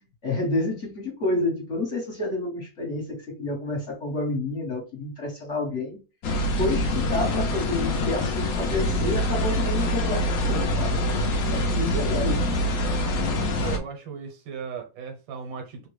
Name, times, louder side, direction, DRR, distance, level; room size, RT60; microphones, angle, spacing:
voice 1, 0.2-6.0 6.6-11.0 11.5-12.6, left 2 dB, 45° left, 1.3 m, -29 dB
sound 1, 6.2-13.8, left 1 dB, 70° left, 0.8 m, -25 dB
voice 2, 13.6-15.9, right 6 dB, 80° right, 1.6 m, -36 dB
3.3 x 2.2 x 3.1 m
omnidirectional pair, 2.0 m